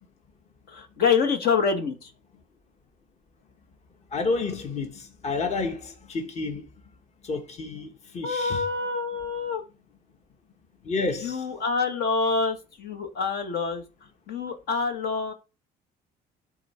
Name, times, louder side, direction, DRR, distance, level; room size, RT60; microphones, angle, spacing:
voice 1, 0.7-2.1 8.2-9.6 11.1-13.8 14.3-15.3, left 5 dB, 70° left, 1.5 m, -26 dB
voice 2, 4.1-6.6 7.2-8.6 10.8-11.4, left 3 dB, 40° left, 1.4 m, -30 dB
11.5 x 3.9 x 4.3 m
cardioid pair, 110°, 17 cm